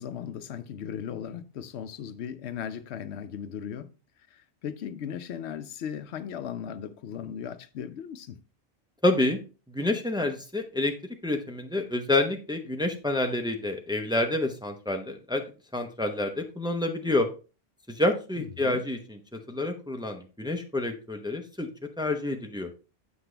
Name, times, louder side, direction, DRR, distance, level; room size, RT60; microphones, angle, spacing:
voice 1, 0.0-3.9 4.3-8.4 18.4-18.8, left 8 dB, 85° left, 0.9 m, -37 dB
voice 2, 9.0-9.4 9.7-10.9 11.2-15.4 15.7-17.3 17.9-19.2 19.5-21.7 22.0-22.7, left 2 dB, 5° right, 0.7 m, -28 dB
7.9 x 5.9 x 3.3 m
omnidirectional pair, 1.1 m